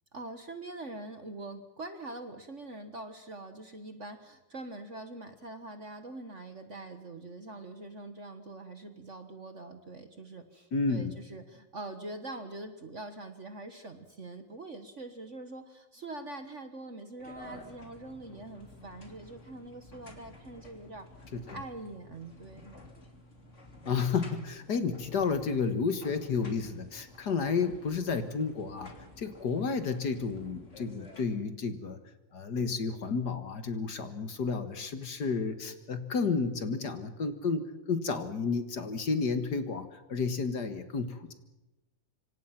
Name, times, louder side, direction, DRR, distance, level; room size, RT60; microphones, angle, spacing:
voice 1, 0.1-21.1 21.5-22.7, right 2 dB, 40° right, 8 dB, 1.5 m, -44 dB
voice 2, 10.7-11.1 21.3-21.6 23.9-32.0 32.3-41.3, left 5 dB, 50° left, 9 dB, 2.0 m, -31 dB
sound 1, 17.2-31.2, left 2 dB, 35° left, 3.3 m, -52 dB
26.0 x 25.0 x 5.9 m, 1.0 s
omnidirectional pair, 2.3 m